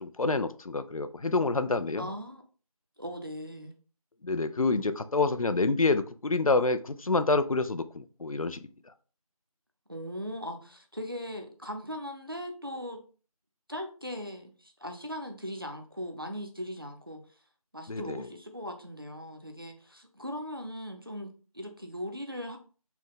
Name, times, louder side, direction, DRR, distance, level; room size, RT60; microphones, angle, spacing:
voice 1, 0.0-2.1 4.2-8.6 17.9-18.2, left 3 dB, 65° left, 0.4 m, -27 dB
voice 2, 2.0-2.4 3.0-3.7 9.9-13.0 13.7-17.4 17.7-22.6, equal, 40° right, 0.5 m, -39 dB
4.3 x 2.2 x 3.8 m
figure-of-eight pair, 180°, 19 cm